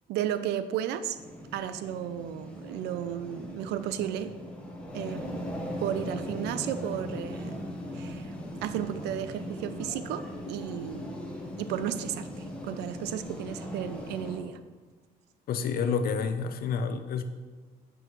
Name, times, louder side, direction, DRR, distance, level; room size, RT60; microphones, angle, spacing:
voice 1, 0.1-1.2 1.5-4.3 4.9-5.4 5.8-7.6 7.9-8.3 8.6-11.1 11.6-14.6, right 10 dB, 85° right, 12 dB, 0.5 m, -33 dB
sound 1, 1.1-14.4, left 1 dB, 5° left, 1.4 m, -39 dB
voice 2, 15.5-17.2, left 6 dB, 65° left, 9 dB, 0.7 m, -29 dB
8.9 x 6.2 x 3.1 m, 1.4 s
cardioid pair, 110°, 17 cm